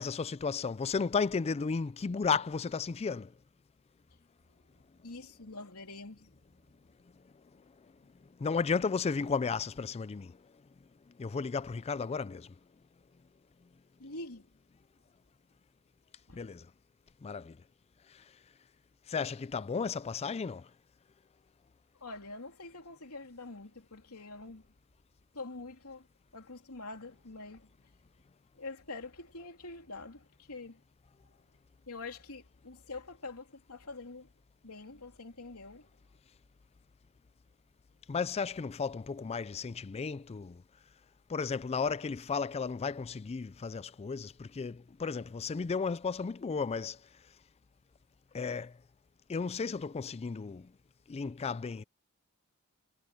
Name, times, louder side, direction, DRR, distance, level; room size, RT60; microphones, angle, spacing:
voice 1, 0.0-3.3 8.4-10.3 11.2-12.5 16.3-16.7 17.2-17.6 19.1-20.7 38.1-40.6 41.3-47.0 48.3-48.7 49.3-50.7 51.1-51.8, left 5 dB, 30° left, 0.4 m, -34 dB
voice 2, 5.0-6.4 14.0-14.5 16.3-16.4 22.0-24.7 25.3-26.1 26.3-27.7 28.6-30.8 31.9-34.3 34.6-35.9, left 3 dB, 85° left, 3.1 m, -45 dB
head